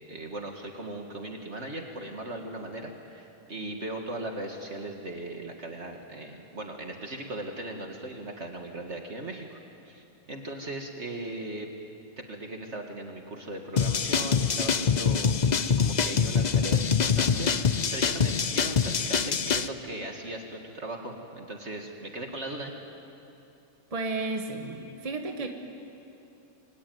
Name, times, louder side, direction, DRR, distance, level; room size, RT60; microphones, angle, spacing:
voice 1, 0.1-9.6 9.9-11.7 12.2-22.7, right 1 dB, 50° right, 2 dB, 2.2 m, -38 dB
sound 1, 13.8-19.7, left 6 dB, 40° left, 0.7 m, -25 dB
voice 2, 23.9-25.5, right 3 dB, 25° right, 4 dB, 1.6 m, -32 dB
27.5 x 23.0 x 9.3 m, 2.8 s
omnidirectional pair, 1.5 m